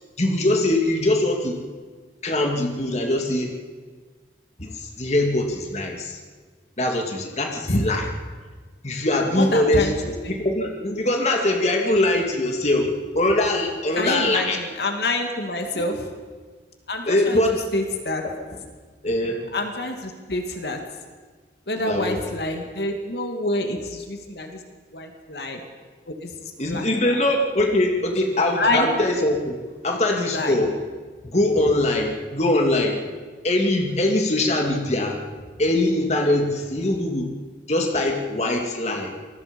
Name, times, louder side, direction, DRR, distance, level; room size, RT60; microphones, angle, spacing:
voice 1, 0.2-1.6 2.2-3.5 4.6-6.2 6.8-8.1 8.8-14.6 15.7-15.9 17.0-17.6 18.2-18.6 19.0-19.5 21.7-22.2 26.6-30.7 31.2-33.0 33.4-35.2 35.6-37.3 37.7-39.1, left 1 dB, 40° left, 2 dB, 2.6 m, -22 dB
voice 2, 9.4-9.9 10.2-10.4 14.0-16.0 16.9-17.4 17.7-18.2 19.5-20.8 21.7-24.6 24.9-25.6 26.1-26.9 28.6-28.9 30.3-30.6, left 2 dB, 70° left, 4 dB, 2.4 m, -27 dB
27.0 x 21.5 x 5.4 m, 1.4 s
head